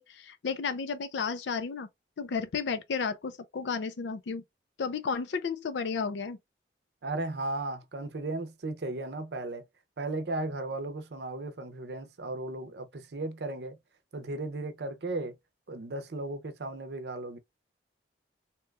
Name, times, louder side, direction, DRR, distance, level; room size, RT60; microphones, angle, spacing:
voice 1, 0.0-1.9 2.2-4.4 4.8-6.4, left 5 dB, 80° left, 0.4 m, -33 dB
voice 2, 7.0-9.6 10.0-13.8 14.1-15.4 15.7-17.4, right 2 dB, 65° right, 0.6 m, -35 dB
2.9 x 2.3 x 3.2 m
head